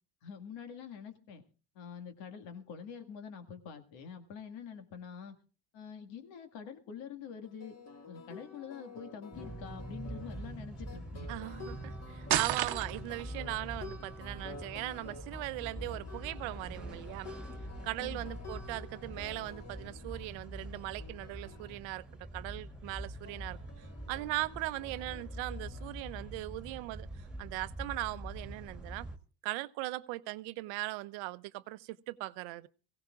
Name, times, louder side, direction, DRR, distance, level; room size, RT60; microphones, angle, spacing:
voice 1, 0.2-1.4 1.8-5.4 5.7-7.7 8.1-11.3 18.0-18.3, left 7 dB, 75° left, 2.0 m, -46 dB
sound 1, 7.3-21.8 23.2-26.3, left 4 dB, 35° left, 1.9 m, -51 dB
sound 2, 9.3-29.2, right 1 dB, ahead, 2.1 m, -44 dB
voice 2, 11.3-17.3 17.8-22.1 22.3-29.1 29.4-32.7, right 19 dB, 80° right, 0.8 m, -39 dB
sound 3, 12.3-13.2, right 13 dB, 55° right, 0.9 m, -30 dB
23.5 x 16.5 x 2.4 m
cardioid pair, 105°, 45 cm